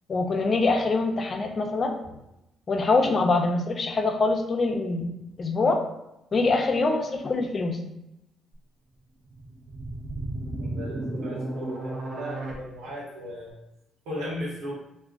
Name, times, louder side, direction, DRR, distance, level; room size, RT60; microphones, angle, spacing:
voice 1, 0.1-1.9 2.7-5.1 5.4-5.8 6.3-7.8, left 3 dB, 45° left, 4 dB, 0.4 m, -24 dB
sound 1, 9.3-12.5, right 2 dB, 55° right, 0.7 m, -33 dB
voice 2, 10.6-13.5 14.0-14.7, equal, 90° right, -4 dB, 1.0 m, -36 dB
2.4 x 2.2 x 3.4 m, 0.87 s
cardioid pair, 90°, 0 cm